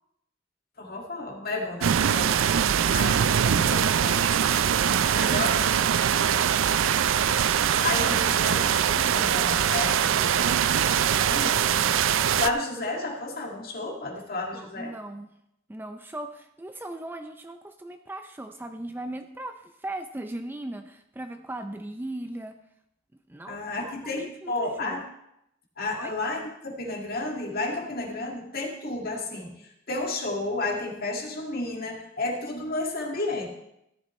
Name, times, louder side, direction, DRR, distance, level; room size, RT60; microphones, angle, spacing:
voice 1, 0.8-2.3 2.9-4.2 5.2-5.8 7.8-11.9 12.4-14.9 23.5-25.1 25.8-33.5, left 2 dB, 50° left, 0 dB, 2.1 m, -32 dB
sound 1, 1.8-12.5, right 8 dB, 70° right, 0.4 m, -22 dB
voice 2, 14.5-15.3 15.7-22.6 23.3-25.0 25.9-26.1 28.2-28.3, right 1 dB, 10° right, 6 dB, 0.4 m, -38 dB
14.5 x 11.0 x 3.1 m, 0.80 s
head